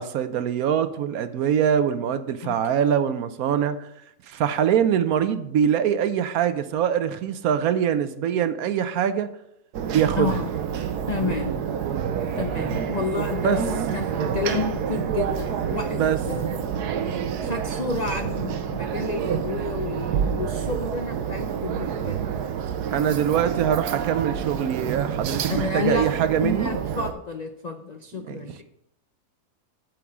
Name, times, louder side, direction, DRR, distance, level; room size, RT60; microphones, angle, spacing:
voice 1, 0.0-3.9 4.3-9.3 9.9-10.3 13.4-13.6 15.9-16.2 22.9-26.7 28.2-28.4, right 8 dB, 70° right, 11 dB, 1.1 m, -23 dB
sound 1, 9.7-27.1, right 8 dB, 90° right, 1.3 m, -28 dB
voice 2, 10.2-10.5 11.1-11.5 12.4-16.6 17.4-22.2 25.5-26.1 26.4-28.6, left 4 dB, 75° left, 5 dB, 0.3 m, -30 dB
8.8 x 4.6 x 7.2 m, 0.80 s
omnidirectional pair, 1.7 m